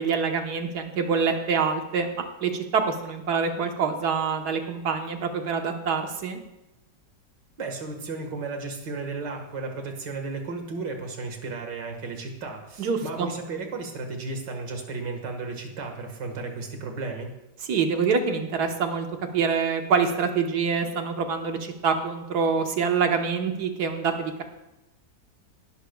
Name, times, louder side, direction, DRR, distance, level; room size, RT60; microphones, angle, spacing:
voice 1, 0.0-6.4 12.8-13.3 17.6-19.1 19.3-24.4, right 5 dB, 65° right, 5 dB, 1.7 m, -26 dB
voice 2, 7.6-17.3, right 3 dB, 85° right, 3 dB, 2.3 m, -34 dB
17.5 x 11.5 x 2.3 m, 0.95 s
omnidirectional pair, 1.9 m